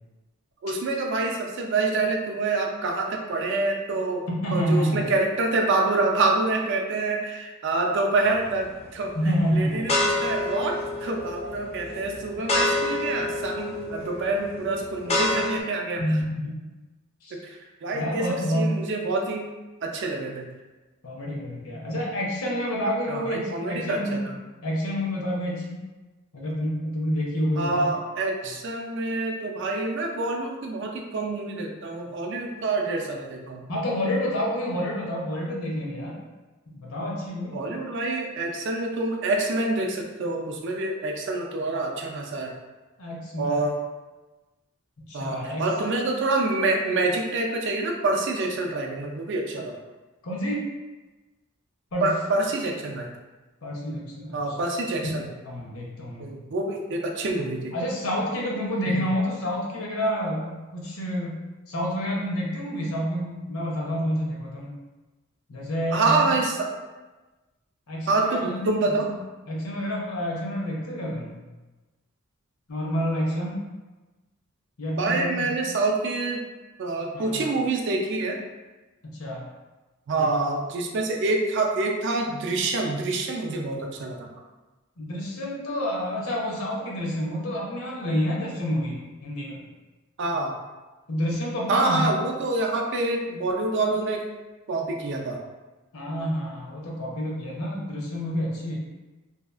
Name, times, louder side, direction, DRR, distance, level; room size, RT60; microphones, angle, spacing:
voice 1, 0.6-4.2 4.5-9.1 9.5-16.0 17.3-18.3 18.5-19.5 19.8-20.5 23.1-24.3 27.6-33.6 37.5-42.5 43.4-43.8 45.1-49.8 52.0-53.1 54.3-55.3 56.2-57.7 58.9-59.1 65.9-66.7 68.1-69.1 75.0-76.4 76.8-78.4 80.1-84.3 90.2-90.6 91.7-94.2 94.7-95.4, right 2 dB, 55° right, 1 dB, 0.4 m, -26 dB
voice 2, 4.4-5.0 9.1-9.8 16.0-16.6 17.2-17.4 17.9-18.8 21.0-24.3 24.6-25.8 26.3-27.9 33.7-36.2 36.7-37.6 43.0-43.7 45.1-45.7 50.2-50.6 51.9-52.1 53.6-54.6 55.4-56.3 57.7-61.4 61.7-64.7 65.5-66.3 67.9-68.7 69.1-69.2 69.5-71.4 72.7-73.6 74.8-75.5 77.1-77.5 79.0-79.5 80.1-80.3 85.0-89.6 91.1-92.0 95.9-98.8, equal, 80° left, -3 dB, 0.7 m, -28 dB
sound 1, 8.3-8.7 9.3-15.6, left 2 dB, 30° left, 0.3 m, -28 dB
2.7 x 2.4 x 2.4 m, 1.2 s
head